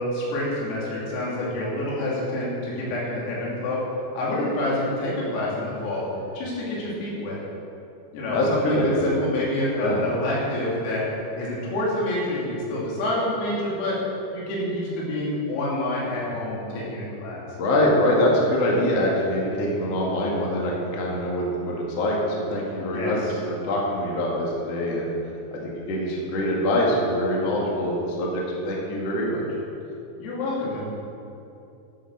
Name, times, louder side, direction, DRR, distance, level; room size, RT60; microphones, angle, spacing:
voice 1, 0.0-3.8 4.1-6.1 6.3-7.4 8.1-11.1 11.4-14.0 14.3-17.4 22.9-23.4 30.2-30.8, left 1 dB, 85° left, -6 dB, 5.4 m, -27 dB
voice 2, 8.3-9.1 9.8-10.0 17.6-23.2 23.6-25.1 25.5-29.4, left 1 dB, 55° left, -3 dB, 1.9 m, -24 dB
12.0 x 7.9 x 6.6 m, 2.8 s
omnidirectional pair, 5.9 m